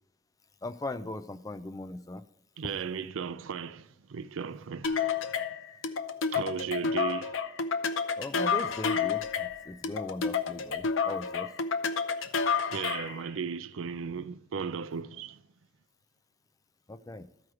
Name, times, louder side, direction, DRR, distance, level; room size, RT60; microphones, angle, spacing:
voice 1, 0.6-2.2 8.2-11.5 16.9-17.3, left 2 dB, 15° left, 0.3 m, -39 dB
voice 2, 2.6-5.1 6.3-7.4 12.2-12.3 12.7-15.4, right 6 dB, 85° right, 0.5 m, -36 dB
sound 1, 4.8-13.2, left 5 dB, 80° left, 0.6 m, -30 dB
13.5 x 4.7 x 4.8 m
head